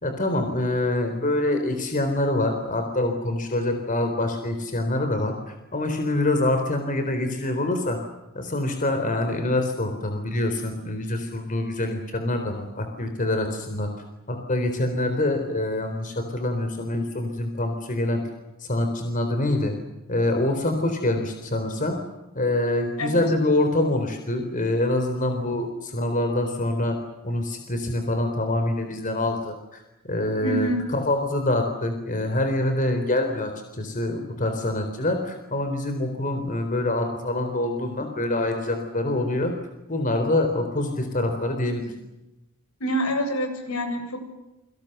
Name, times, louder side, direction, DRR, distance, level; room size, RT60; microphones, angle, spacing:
voice 1, 0.0-8.0 8.3-13.9 14.3-18.2 18.6-19.7 20.1-22.0 22.3-27.0 27.2-39.5 39.9-41.9, left 1 dB, 35° left, 6 dB, 3.9 m, -25 dB
voice 2, 30.4-30.8 42.8-44.2, equal, 80° left, 6 dB, 8.0 m, -26 dB
29.5 x 25.5 x 6.8 m, 0.98 s
head